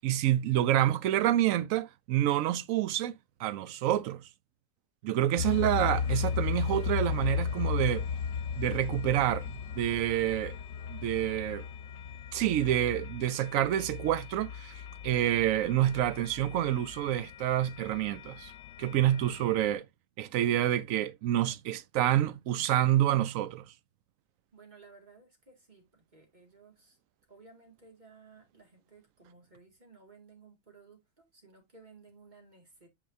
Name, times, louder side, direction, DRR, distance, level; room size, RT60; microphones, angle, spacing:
voice 1, 0.0-4.3 5.0-8.1 8.6-10.6 10.9-11.6 12.3-18.5 18.8-19.9 20.2-23.6, right 12 dB, 85° right, 1.0 m, -28 dB
sound 1, 5.4-19.7, left 6 dB, 85° left, 1.2 m, -36 dB
voice 2, 24.5-27.0 27.3-32.9, right 4 dB, 35° right, 2.3 m, -57 dB
8.9 x 4.9 x 2.6 m
omnidirectional pair, 1.4 m